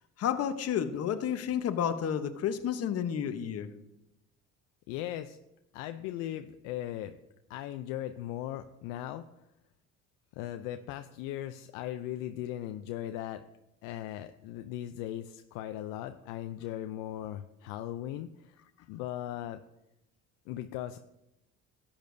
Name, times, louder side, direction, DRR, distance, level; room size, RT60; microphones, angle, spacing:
voice 1, 0.2-3.7, left 9 dB, 50° left, 8 dB, 0.9 m, -31 dB
voice 2, 4.9-5.4 5.7-7.2 7.5-9.2 10.4-13.4 13.8-18.6 18.9-19.6 20.5-21.0, left 12 dB, 80° left, 8 dB, 0.5 m, -38 dB
13.5 x 8.8 x 2.6 m, 0.88 s
supercardioid pair, 90°, 32 cm